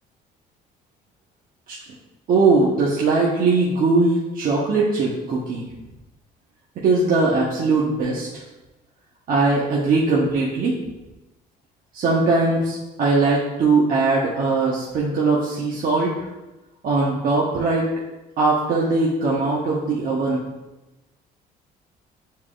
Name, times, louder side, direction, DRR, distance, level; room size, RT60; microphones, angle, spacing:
voice 1, 2.3-5.6 6.8-8.3 9.3-10.8 11.9-16.3 16.8-17.9 18.4-20.4, right 3 dB, 55° right, -4 dB, 1.1 m, -20 dB
8.9 x 4.5 x 2.5 m, 1.0 s
cardioid pair, 110°, 17 cm